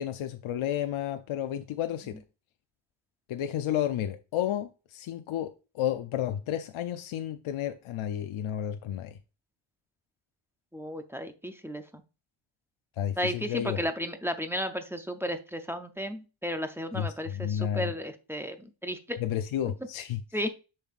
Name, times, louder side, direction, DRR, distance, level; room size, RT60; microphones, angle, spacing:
voice 1, 0.0-2.2 3.3-9.2 13.0-13.8 16.9-17.9 19.2-20.2, left 10 dB, 75° left, 0.6 m, -31 dB
voice 2, 10.7-12.0 13.2-19.2 20.3-20.5, equal, 5° right, 0.4 m, -34 dB
7.0 x 5.7 x 2.5 m
wide cardioid pair, 150°, 49 cm